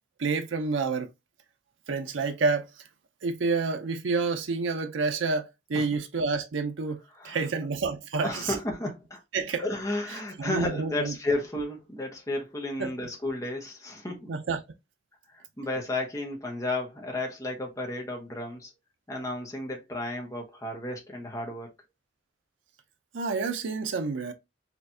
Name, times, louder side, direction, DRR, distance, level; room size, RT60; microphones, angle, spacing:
voice 1, 0.2-1.1 1.9-2.7 3.2-7.0 7.2-8.6 9.3-9.6 10.4-11.1 12.8-12.9 14.3-14.6 23.1-24.3, right 4 dB, 85° right, 0.5 m, -28 dB
voice 2, 7.1-7.5 8.2-9.2 9.6-14.3 15.3-18.7 19.1-21.7, left 1 dB, 15° left, 0.9 m, -33 dB
4.3 x 2.5 x 2.7 m
head